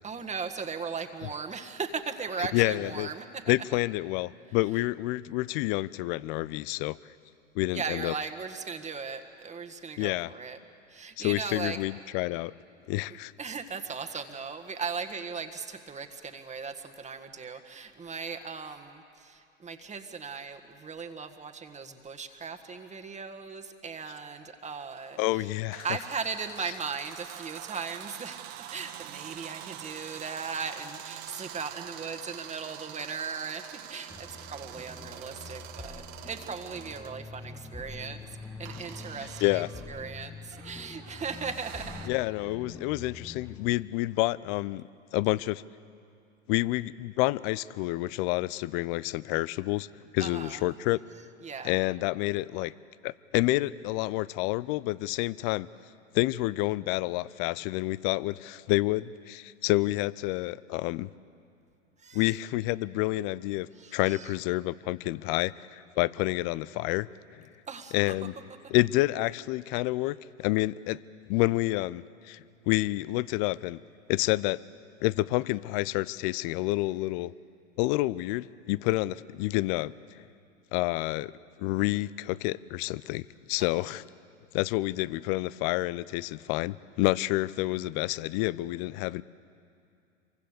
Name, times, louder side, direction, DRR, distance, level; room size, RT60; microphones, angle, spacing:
voice 1, 0.0-3.4 7.7-10.6 10.9-11.8 13.4-25.5 25.8-34.1 34.4-38.2 38.6-42.0 50.2-50.7 51.4-51.8 62.0-62.3 63.7-64.3 67.7-68.1 83.6-83.9, right 5 dB, 20° right, 6 dB, 1.7 m, -38 dB
voice 2, 2.5-3.1 3.5-7.0 7.5-8.1 10.0-10.3 11.2-12.5 12.9-13.3 25.2-25.8 39.4-39.7 42.1-45.6 46.5-49.9 50.1-51.0 51.6-52.7 53.0-55.7 56.1-61.1 62.1-67.5 67.9-68.3 68.7-71.0 71.3-73.8 74.1-74.6 75.0-77.3 77.8-80.2 80.7-81.3 81.6-84.0 84.5-89.2, left 19 dB, 50° left, 20 dB, 0.6 m, -29 dB
sound 1, 24.6-37.2 38.7-42.1, right 12 dB, 55° right, 1.6 m, -45 dB
sound 2, 34.1-43.7, left 4 dB, 5° left, 1.0 m, -45 dB
27.0 x 24.0 x 6.8 m, 2.5 s
hypercardioid pair, 95°, 37 cm